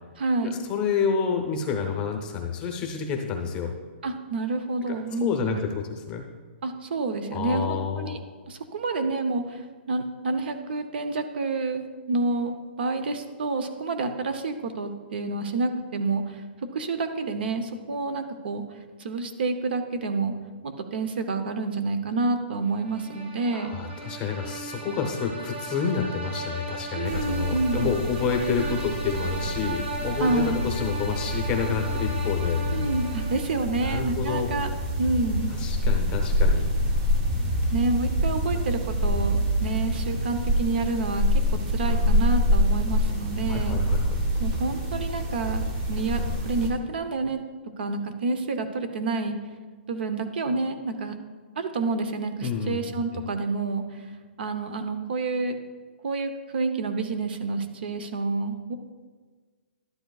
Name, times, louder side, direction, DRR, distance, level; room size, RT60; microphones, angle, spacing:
voice 1, 0.2-0.5 4.0-5.6 6.6-8.2 8.5-16.4 16.7-18.6 19.0-20.3 20.6-23.7 26.9-27.9 30.2-30.6 32.7-34.7 35.0-35.5 37.7-41.3 41.7-43.8 44.4-47.4 47.8-49.4 49.9-51.1 51.6-54.0 54.4-55.6 56.0-58.7, right 3 dB, 55° right, 8 dB, 0.8 m, -28 dB
voice 2, 0.7-3.7 4.9-6.2 7.3-8.2 23.5-32.6 33.9-34.5 35.5-36.7 43.5-44.3 52.4-52.8, left 6 dB, 15° left, 3 dB, 0.7 m, -29 dB
sound 1, 22.7-33.7, right 2 dB, 75° right, 2.5 m, -37 dB
sound 2, 27.0-46.7, equal, 30° right, 1.3 m, -26 dB
12.0 x 10.5 x 2.4 m, 1.5 s
hypercardioid pair, 170°, 6 cm